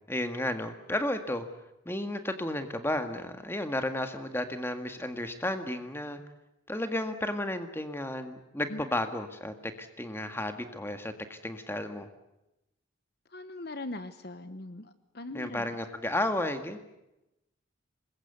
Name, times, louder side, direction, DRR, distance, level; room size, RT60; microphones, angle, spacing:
voice 1, 0.1-1.5 1.9-6.2 6.7-12.1 15.3-16.8, left 1 dB, 10° left, 7 dB, 1.7 m, -33 dB
voice 2, 13.3-15.7, left 2 dB, 50° left, 11 dB, 1.1 m, -40 dB
26.0 x 21.5 x 8.2 m, 0.93 s
head